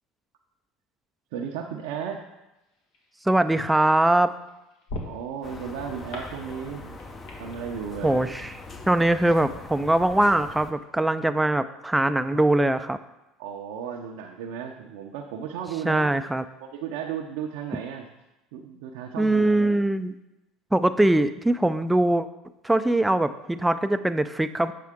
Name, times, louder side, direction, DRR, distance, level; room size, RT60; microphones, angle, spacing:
voice 1, 1.3-2.2 5.0-7.0 7.4-8.4 13.4-16.1 16.6-18.0 18.5-19.8, right 8 dB, 75° right, 0 dB, 0.6 m, -34 dB
sound 1, 2.5-9.1, left 1 dB, 70° left, 1.6 m, -44 dB
voice 2, 3.3-4.3 8.0-8.5 8.9-13.0 15.8-16.4 19.2-20.1 20.7-22.3 22.6-24.7, right 1 dB, 5° right, 11 dB, 0.4 m, -22 dB
sound 2, 5.4-10.7, left 3 dB, 25° left, 0.7 m, -42 dB
7.5 x 5.6 x 3.6 m, 0.96 s
supercardioid pair, 90°, 0 cm